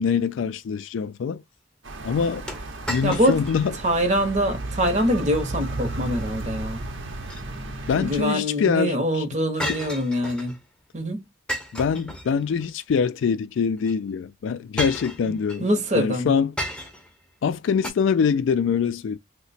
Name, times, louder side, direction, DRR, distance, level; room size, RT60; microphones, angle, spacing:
voice 1, 0.0-1.4 2.0-2.5 2.9-3.8 7.9-9.2 11.7-15.7 15.9-16.6 17.4-19.2, left 6 dB, 75° left, 0.3 m, -24 dB
sound 1, 1.8-8.2, right 2 dB, 75° right, 0.8 m, -34 dB
sound 2, 2.5-3.7 4.0-4.1 4.7-5.1 7.0-7.9 9.6-10.6 11.5-12.7 13.8-13.9 14.8-15.6 16.6-17.2 17.8-17.9, equal, 5° left, 0.6 m, -33 dB
voice 2, 3.0-3.4 3.8-6.8 8.0-10.6 10.9-11.3 15.6-16.3, equal, 35° right, 0.7 m, -24 dB
2.9 x 2.1 x 4.1 m
head